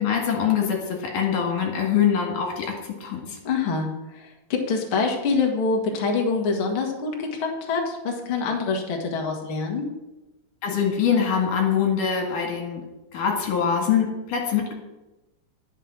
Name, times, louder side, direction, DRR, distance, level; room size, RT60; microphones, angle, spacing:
voice 1, 0.0-3.4 10.6-12.8 13.1-14.7, left 7 dB, 55° left, 0 dB, 3.1 m, -24 dB
voice 2, 3.4-9.9, left 4 dB, 80° left, 1 dB, 1.1 m, -25 dB
11.0 x 6.6 x 6.1 m, 1.0 s
omnidirectional pair, 5.0 m